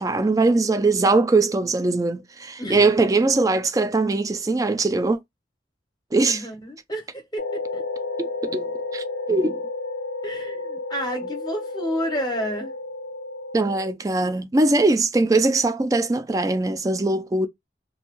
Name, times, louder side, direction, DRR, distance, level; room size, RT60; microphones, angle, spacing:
voice 1, 0.0-5.2 6.1-6.5 8.2-9.6 13.5-17.5, right 3 dB, 20° right, 0.3 m, -21 dB
voice 2, 6.3-7.8 10.2-12.7, equal, 20° left, 0.8 m, -30 dB
sound 1, 7.4-13.9, left 3 dB, 70° left, 0.4 m, -32 dB
2.6 x 2.2 x 2.9 m
head